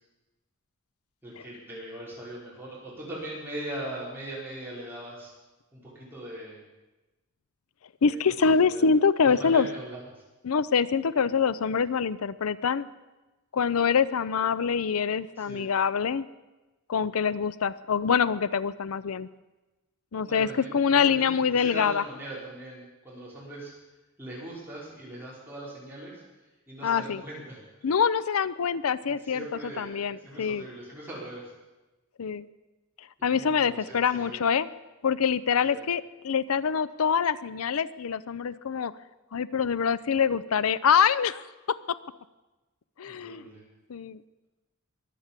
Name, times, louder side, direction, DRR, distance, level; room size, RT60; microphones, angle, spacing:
voice 1, 1.2-5.3 5.7-6.6 8.1-8.2 8.4-8.9 9.2-10.0 15.4-15.7 20.2-23.7 24.2-26.2 26.7-27.6 29.0-31.5 33.3-34.5 35.6-35.8 43.1-43.6, right 1 dB, 10° right, -7 dB, 5.1 m, -40 dB
voice 2, 8.0-9.7 10.4-12.9 13.5-16.2 16.9-19.3 20.1-22.0 26.8-27.2 27.8-30.6 32.2-32.4 33.2-34.7 35.0-38.9 39.3-41.4 41.7-41.8 43.0-43.4 43.9-44.2, left 6 dB, 85° left, 17 dB, 0.5 m, -25 dB
23.0 x 8.3 x 7.4 m, 1.1 s
head